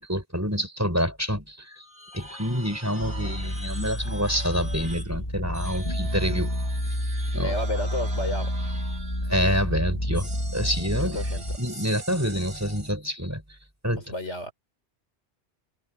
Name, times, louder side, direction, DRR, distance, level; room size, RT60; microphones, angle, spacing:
voice 1, 0.0-1.8 2.1-6.5 7.3-7.5 9.2-11.2 11.6-13.6 13.8-14.0, equal, 15° right, 6.3 m, -27 dB
sound 1, 1.7-5.1 5.5-9.5 10.1-12.9, right 2 dB, 80° right, 4.7 m, -43 dB
sound 2, 3.0-11.6, equal, 30° left, 3.9 m, -29 dB
voice 2, 7.4-8.5 11.0-11.4 14.1-14.5, left 1 dB, 90° left, 4.8 m, -31 dB
omnidirectional pair, 1.2 m